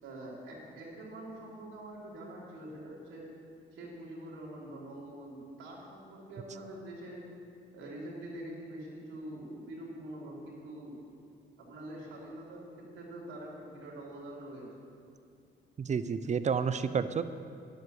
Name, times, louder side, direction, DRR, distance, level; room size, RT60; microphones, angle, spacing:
voice 1, 0.0-3.3 3.7-7.2 7.7-11.0 11.6-14.7, right 1 dB, 80° right, -3 dB, 3.3 m, -45 dB
voice 2, 15.8-17.2, right 6 dB, 35° right, 12 dB, 0.6 m, -30 dB
10.5 x 7.7 x 7.9 m, 2.4 s
cardioid pair, 90°, 20 cm